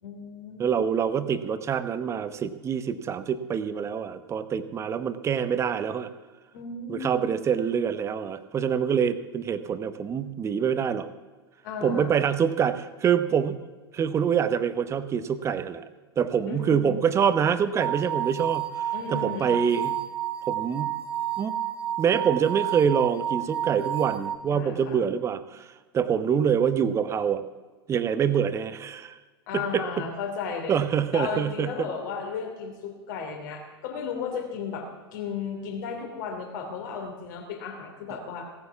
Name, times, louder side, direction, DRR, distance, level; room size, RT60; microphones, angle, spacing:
voice 1, 0.0-0.7 6.5-7.3 11.6-12.2 16.5-17.3 18.9-19.6 24.5-25.0 29.5-30.8 31.1-38.5, left 5 dB, 50° left, 3 dB, 3.0 m, -35 dB
voice 2, 0.6-6.1 6.9-11.1 11.8-13.6 13.9-15.8 16.2-20.0 20.5-21.0 21.4-21.6 22.0-25.7 25.9-27.4 27.9-29.2 29.5-30.0 30.7-31.9, right 7 dB, 20° right, 13 dB, 0.9 m, -25 dB
sound 1, 17.8-24.4, right 11 dB, 75° right, 1.5 m, -30 dB
17.0 x 9.5 x 7.0 m, 1.4 s
figure-of-eight pair, 90°, 13 cm